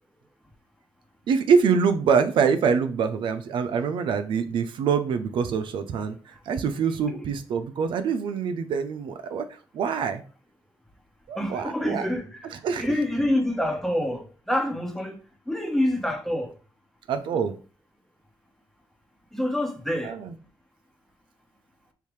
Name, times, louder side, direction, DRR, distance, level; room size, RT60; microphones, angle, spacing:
voice 1, 1.3-6.2 6.5-9.5 9.7-10.2 11.3-12.1 12.6-12.9 17.1-17.5 20.0-20.4, right 6 dB, 80° right, 0.5 m, -24 dB
voice 2, 11.4-15.2 15.5-16.5 19.3-20.1, left 1 dB, 5° left, 1.1 m, -27 dB
3.5 x 2.8 x 4.7 m
cardioid pair, 80°, 8 cm